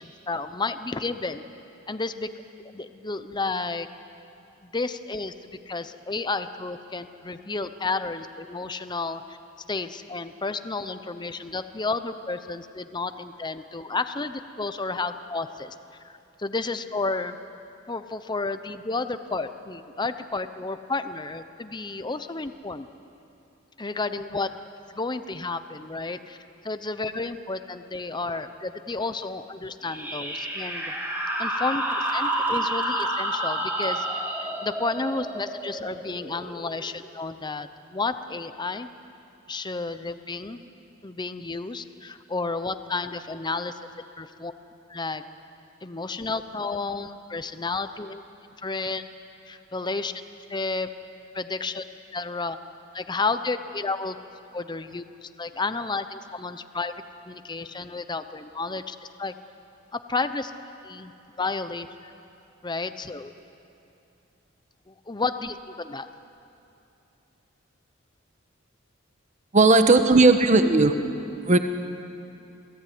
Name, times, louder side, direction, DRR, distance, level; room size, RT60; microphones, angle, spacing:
voice 1, 0.0-1.4 1.9-2.3 2.7-3.9 4.6-9.4 9.7-15.7 16.0-17.4 17.9-22.9 23.8-24.5 24.9-26.4 26.6-30.9 31.4-38.9 39.5-40.6 41.0-43.7 44.2-44.5 44.9-45.2 45.8-48.2 48.6-49.0 49.5-50.1 50.5-50.9 51.3-51.8 52.1-52.6 52.9-54.2 54.5-56.9 57.3-59.3 59.9-60.5 60.8-61.1 61.4-62.1 62.6-63.3 64.9-66.1, left 3 dB, 20° left, 10 dB, 0.8 m, -31 dB
sound 1, 29.8-37.1, right 1 dB, 10° right, 2.9 m, -29 dB
voice 2, 69.5-70.9 71.5-71.6, right 3 dB, 35° right, 8 dB, 1.2 m, -16 dB
28.0 x 18.0 x 9.5 m, 2.7 s
head